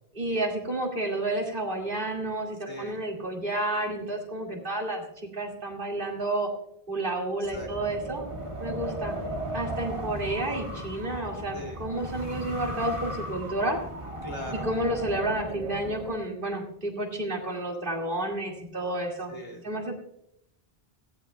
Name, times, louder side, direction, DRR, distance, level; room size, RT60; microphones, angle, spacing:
voice 1, 0.2-5.0 5.3-6.5 6.9-8.2 8.6-9.2 9.5-13.8 14.5-19.3 19.6-19.9, right 1 dB, 55° right, 0 dB, 2.4 m, -30 dB
voice 2, 2.6-3.0 7.4-7.9 11.5-11.8 14.2-14.7 19.3-19.6, equal, 25° left, 1 dB, 2.7 m, -40 dB
Wind, 7.4-16.1, right 1 dB, 30° right, 1.6 m, -36 dB
17.5 x 15.0 x 2.2 m, 0.76 s
omnidirectional pair, 1.1 m